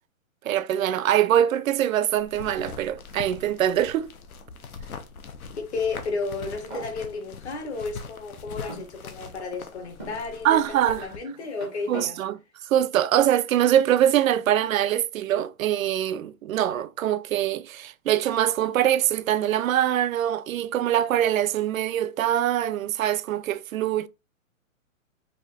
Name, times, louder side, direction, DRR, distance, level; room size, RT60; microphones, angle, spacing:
voice 1, 0.4-4.1 10.4-11.1 11.9-12.4 12.6-24.1, right 11 dB, 70° right, 0.5 m, -23 dB
sound 1, 2.2-11.2, left 5 dB, 85° left, 1.0 m, -42 dB
voice 2, 5.6-12.2, left 4 dB, 50° left, 1.4 m, -32 dB
sound 2, 6.1-6.9 7.7-7.8 8.7-9.5 10.0-10.2 11.1-12.1, equal, 10° left, 0.5 m, -43 dB
4.9 x 2.6 x 3.3 m
hypercardioid pair, 170°, 42 cm